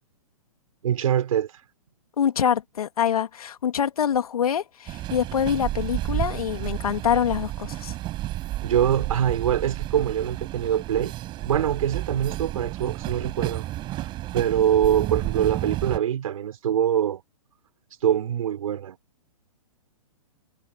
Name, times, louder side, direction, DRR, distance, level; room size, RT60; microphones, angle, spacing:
voice 1, 0.8-1.5 8.6-11.1 11.4-17.2 18.0-19.0, right 10 dB, 70° right, 3.9 m, -24 dB
voice 2, 2.2-7.9, left 8 dB, 75° left, 2.8 m, -25 dB
sound 1, 4.9-16.0, right 15 dB, 25° right, 7.7 m, -31 dB
hypercardioid pair, 145°, 19 cm